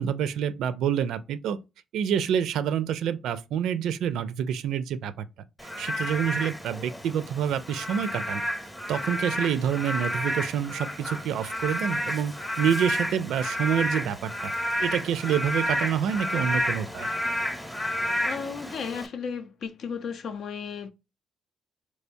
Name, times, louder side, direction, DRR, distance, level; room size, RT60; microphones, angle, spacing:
voice 1, 0.0-1.6 1.9-5.3 5.6-8.4 8.9-14.5 14.8-17.1, right 8 dB, 80° right, 0.4 m, -27 dB
Frog / Rain, 5.6-19.1, equal, 10° left, 0.8 m, -31 dB
voice 2, 18.2-20.9, left 6 dB, 65° left, 0.5 m, -34 dB
3.4 x 3.1 x 2.6 m
cardioid pair, 90°, 0 cm